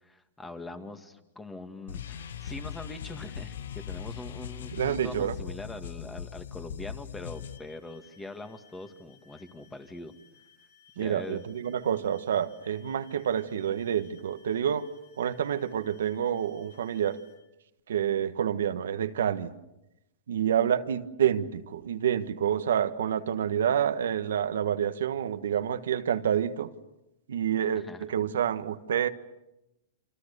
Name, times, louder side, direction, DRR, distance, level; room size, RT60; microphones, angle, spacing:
voice 1, 0.0-10.1 11.0-11.4 27.9-28.0, left 2 dB, 10° left, 2.1 m, -43 dB
sound 1, 1.9-7.6, left 8 dB, 85° left, 1.1 m, -39 dB
voice 2, 4.7-5.3 11.0-17.2 17.9-19.5 20.3-26.7 27.3-29.1, right 9 dB, 85° right, 1.4 m, -28 dB
sound 2, 7.3-17.4, left 7 dB, 60° left, 7.5 m, -61 dB
29.0 x 26.0 x 6.9 m
hypercardioid pair, 140°, 0 cm